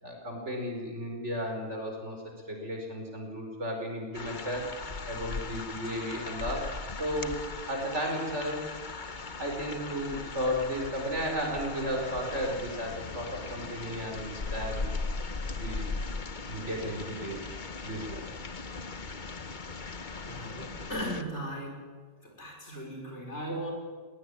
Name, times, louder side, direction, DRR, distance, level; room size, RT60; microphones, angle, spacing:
voice 1, 0.0-2.2 2.5-4.7 5.1-6.6 7.0-7.4 7.7-8.6 9.4-14.9 15.6-15.9 16.5-17.5 17.8-18.3, equal, 70° right, 2 dB, 5.3 m, -34 dB
sound 1, 4.1-21.2, left 3 dB, 40° left, 1.3 m, -38 dB
voice 2, 20.2-21.9 22.2-23.7, equal, 65° left, 1 dB, 6.1 m, -37 dB
20.5 x 18.0 x 9.9 m, 1.5 s
omnidirectional pair, 1.2 m